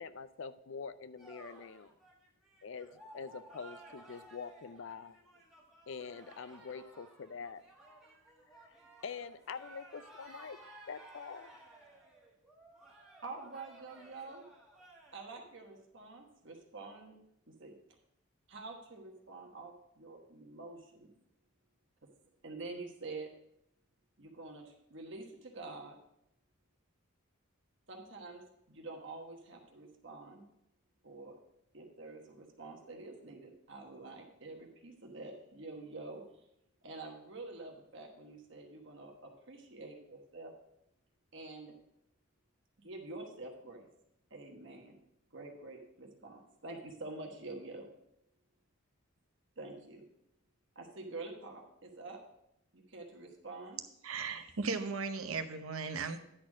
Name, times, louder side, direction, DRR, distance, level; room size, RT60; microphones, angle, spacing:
voice 1, 0.0-1.9 2.6-2.9 3.1-5.2 5.9-7.6 8.5-10.6 10.9-11.5, left 5 dB, 60° left, 14 dB, 0.4 m, -45 dB
sound 1, 1.2-15.3, right 1 dB, ahead, 1.7 m, -56 dB
voice 2, 13.2-14.5 15.1-17.2 17.5-17.7 18.5-21.1 22.0-22.1 22.4-23.3 24.2-26.0 27.9-28.4 28.7-30.4 31.0-31.4 31.7-36.2 36.8-40.5 41.3-41.7 42.8-43.9 44.3-45.0 45.3-47.9 49.6-50.0 50.7-52.2 52.7-53.8, right 3 dB, 55° right, 1 dB, 1.3 m, -47 dB
voice 3, 54.0-56.2, right 4 dB, 80° right, 8 dB, 0.8 m, -36 dB
10.0 x 4.3 x 6.1 m, 0.79 s
head